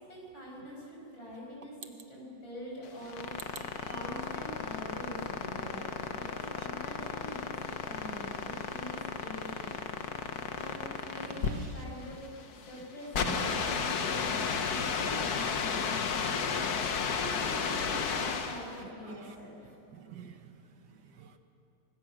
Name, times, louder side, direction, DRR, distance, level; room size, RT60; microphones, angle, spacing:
voice 1, 0.1-3.3 3.8-5.8 6.1-9.0 9.2-10.2 10.5-12.2 12.7-16.3 17.1-19.5, equal, 75° left, -3 dB, 6.8 m, -45 dB
sound 1, 2.8-18.7, left 6 dB, 55° left, 1.6 m, -33 dB
voice 2, 11.3-11.7 13.2-13.8 18.8-19.3 19.9-20.6 21.1-21.4, right 7 dB, 60° right, 7 dB, 1.7 m, -45 dB
25.0 x 21.5 x 6.3 m, 2.8 s
omnidirectional pair, 2.1 m